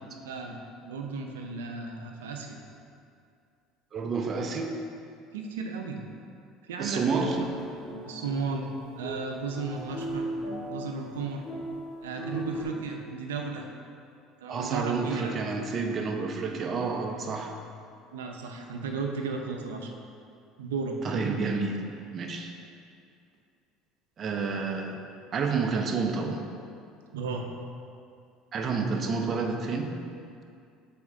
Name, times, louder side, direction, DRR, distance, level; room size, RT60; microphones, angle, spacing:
voice 1, 0.2-2.6 5.3-6.0 6.7-7.5 8.1-8.7 9.0-10.3 10.7-11.4 12.0-13.7 14.4-15.4 18.1-19.9 20.6-21.2 27.1-27.5, right 4 dB, 90° right, 3 dB, 0.6 m, -34 dB
voice 2, 3.9-4.7 6.8-7.4 14.5-17.6 21.0-21.8 22.1-22.5 24.2-26.4 28.5-29.9, right 4 dB, 45° right, 3 dB, 0.7 m, -29 dB
sound 1, 6.9-12.6, equal, 30° left, 1.5 m, -37 dB
7.0 x 4.4 x 3.7 m, 2.4 s
hypercardioid pair, 80°, 0 cm